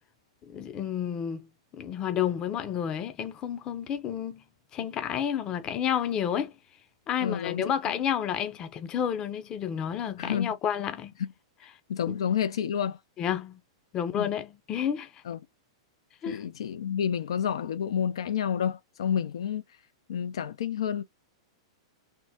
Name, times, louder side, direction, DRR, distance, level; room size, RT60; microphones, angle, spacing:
voice 1, 0.4-1.5 1.7-4.4 4.7-6.6 7.1-11.1 12.1-12.2 13.2-13.6 13.9-15.2 16.2-16.4, left 9 dB, 30° left, 0.6 m, -30 dB
voice 2, 7.2-7.9 10.2-10.6 11.9-13.0 14.2-14.3 15.3-15.4 16.3-19.6 20.1-21.0, left 8 dB, 80° left, 0.5 m, -29 dB
3.6 x 2.1 x 2.7 m
hypercardioid pair, 135°, 3 cm